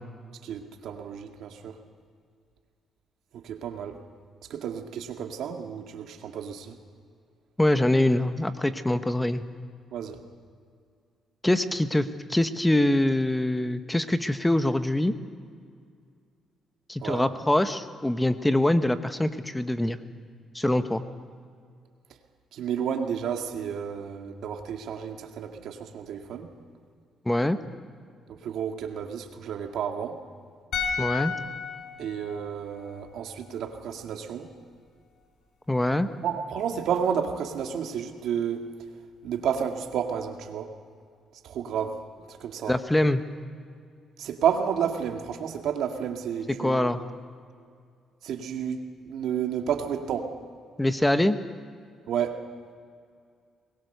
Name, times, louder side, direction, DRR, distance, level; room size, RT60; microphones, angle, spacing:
voice 1, 0.4-1.8 3.3-4.0 4.5-6.8 9.9-10.2 17.0-17.3 22.5-26.5 28.3-30.2 32.0-34.5 36.2-38.7 39.2-40.7 41.4-42.0 42.3-42.8 44.2-46.9 48.2-50.4 52.1-52.4, right 8 dB, 75° right, 4 dB, 2.0 m, -31 dB
voice 2, 7.6-9.4 11.4-15.1 16.9-20.0 20.5-21.0 27.2-27.6 31.0-31.3 35.7-36.1 42.7-43.2 46.6-47.0 50.8-51.4, left 1 dB, 10° left, 10 dB, 1.1 m, -24 dB
sound 1, 30.7-33.9 34.2-34.4, left 6 dB, 70° left, 4.2 m, -34 dB
22.5 x 20.5 x 6.8 m, 2.2 s
cardioid pair, 90°, 0 cm